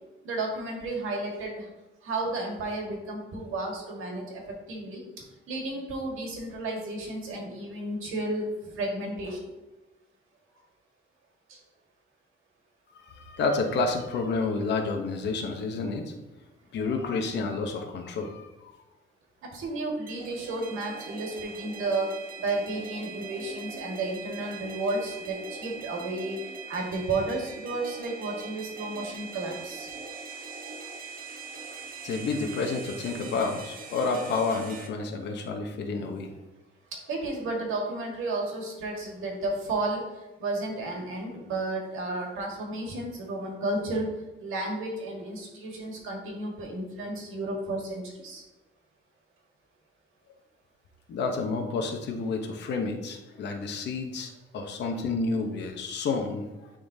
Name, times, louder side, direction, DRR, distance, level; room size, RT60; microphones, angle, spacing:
voice 1, 0.2-1.7 2.0-5.0 5.5-9.4 11.5-11.6 19.5-26.4 26.7-29.9 36.9-40.0 40.4-44.1 44.4-48.4 55.1-55.3, right 2 dB, 80° right, 0 dB, 1.7 m, -32 dB
voice 2, 12.9-16.1 16.7-18.5 32.0-36.3 51.1-56.5, left 4 dB, 60° left, 3 dB, 0.8 m, -30 dB
sound 1, 20.1-34.9, right 4 dB, 45° right, 0.8 m, -42 dB
9.9 x 3.8 x 2.7 m, 1.1 s
cardioid pair, 170°, 21 cm